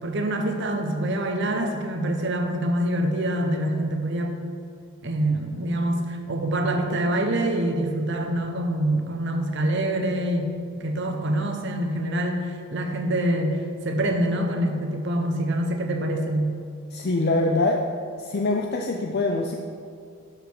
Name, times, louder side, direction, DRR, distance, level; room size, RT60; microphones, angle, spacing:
voice 1, 0.0-4.4 5.0-10.5 10.8-16.5, right 1 dB, 60° right, 4 dB, 0.9 m, -25 dB
voice 2, 16.9-17.8 18.2-19.6, left 2 dB, 50° left, 2 dB, 0.5 m, -24 dB
12.0 x 5.0 x 4.8 m, 2.2 s
head